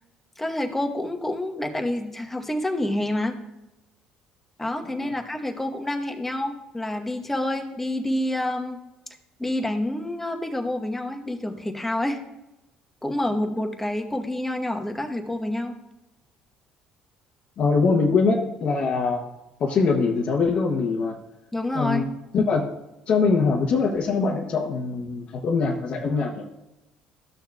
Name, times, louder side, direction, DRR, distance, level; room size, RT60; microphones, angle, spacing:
voice 1, 0.4-3.4 4.6-8.8 9.4-12.2 13.0-15.8 21.5-22.0, left 1 dB, 10° left, 4 dB, 1.1 m, -28 dB
voice 2, 17.6-19.2 19.6-21.2 21.7-22.1 22.3-22.7 23.1-26.4, left 4 dB, 55° left, -1 dB, 0.9 m, -23 dB
13.5 x 6.4 x 2.4 m, 0.97 s
supercardioid pair, 85°, 2 cm